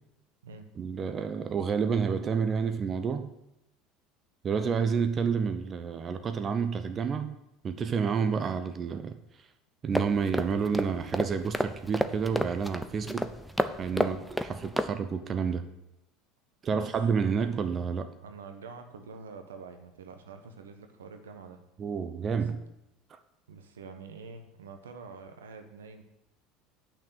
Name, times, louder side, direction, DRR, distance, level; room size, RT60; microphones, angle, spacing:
voice 1, 0.8-3.3 4.4-7.4 7.6-9.2 9.8-13.3 13.8-14.2 14.5-15.7 16.6-18.1 21.8-22.6 23.1-23.2, right 6 dB, 35° right, 9 dB, 0.7 m, -29 dB
sound 1, 9.9-14.9, equal, ahead, 0.7 m, -31 dB
voice 2, 18.2-21.6 22.4-22.7 23.5-26.0, right 4 dB, 80° right, 6 dB, 1.0 m, -46 dB
8.7 x 6.0 x 6.7 m, 0.89 s
hypercardioid pair, 75°, 0 cm